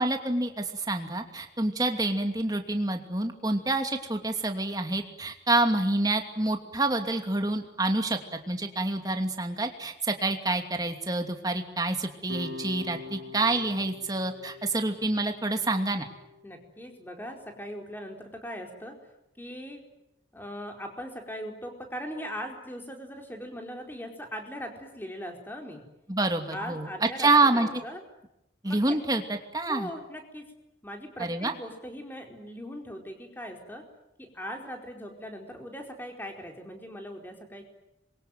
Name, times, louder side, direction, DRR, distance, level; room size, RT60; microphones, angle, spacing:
voice 1, 0.0-8.2 8.5-16.1 26.1-26.9 27.2-27.8 28.6-29.9 31.2-31.5, right 2 dB, 20° right, 5 dB, 2.7 m, -27 dB
sound 1, 12.3-17.4, left 3 dB, 80° right, 2.9 m, -44 dB
voice 2, 16.4-19.0 19.4-19.8 20.3-25.8 26.5-28.0 28.6-29.0 29.7-30.5 30.8-33.8 34.2-37.6, equal, 10° left, 3 dB, 4.5 m, -40 dB
27.0 x 23.5 x 9.3 m, 0.84 s
head